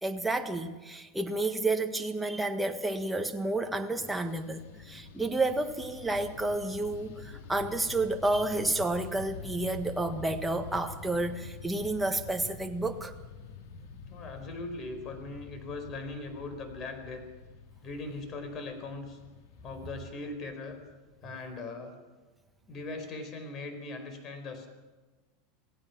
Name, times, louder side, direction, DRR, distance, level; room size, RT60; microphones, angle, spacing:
voice 1, 0.0-13.1, right 2 dB, 5° right, 4 dB, 1.5 m, -30 dB
Fixed-wing aircraft airplane, 4.0-21.4, left 5 dB, 80° left, 2.6 m, -47 dB
voice 2, 14.1-17.2 17.8-19.2 19.6-20.8 21.2-21.9 22.7-24.7, left 3 dB, 30° left, 7 dB, 4.7 m, -40 dB
27.5 x 17.5 x 6.1 m, 1.2 s
supercardioid pair, 150°, 0 cm